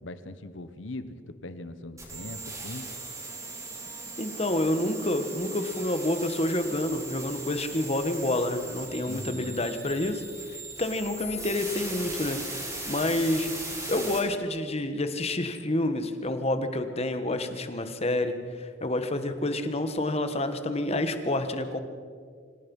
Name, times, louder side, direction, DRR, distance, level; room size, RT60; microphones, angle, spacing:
voice 1, 0.0-2.9 9.0-9.6, left 2 dB, 75° left, 12 dB, 1.2 m, -40 dB
sound 1, 2.0-14.2, right 2 dB, 15° right, 5.7 m, -38 dB
voice 2, 4.2-10.2 10.5-12.4 12.9-13.5 13.9-21.8, left 1 dB, 30° left, 9 dB, 1.4 m, -28 dB
26.0 x 18.0 x 5.5 m, 2.1 s
head